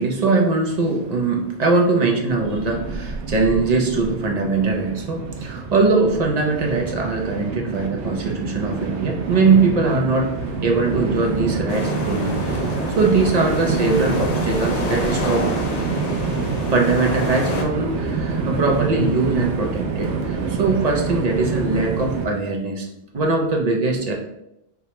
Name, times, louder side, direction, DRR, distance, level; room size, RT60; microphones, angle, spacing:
voice 1, 0.0-10.3 10.6-15.5 16.7-22.9 23.1-24.1, right 3 dB, 45° right, 1 dB, 0.6 m, -21 dB
Train, 2.3-22.2, right 4 dB, 90° right, 0.9 m, -27 dB
sound 1, 11.7-17.6, left 2 dB, 55° left, 0.4 m, -28 dB
4.8 x 2.2 x 2.8 m, 0.82 s
omnidirectional pair, 1.2 m